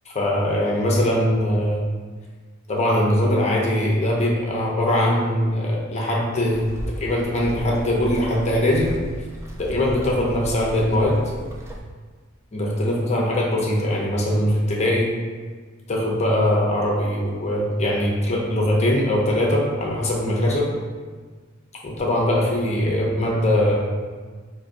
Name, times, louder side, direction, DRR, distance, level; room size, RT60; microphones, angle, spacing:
voice 1, 0.1-1.8 2.7-6.7 7.0-8.9 9.6-11.2 12.5-15.1 15.9-20.7 21.8-23.8, left 1 dB, 35° left, -3 dB, 0.6 m, -21 dB
sound 1, 6.5-11.8, equal, 15° right, 0.4 m, -35 dB
4.8 x 2.6 x 2.5 m, 1.5 s
head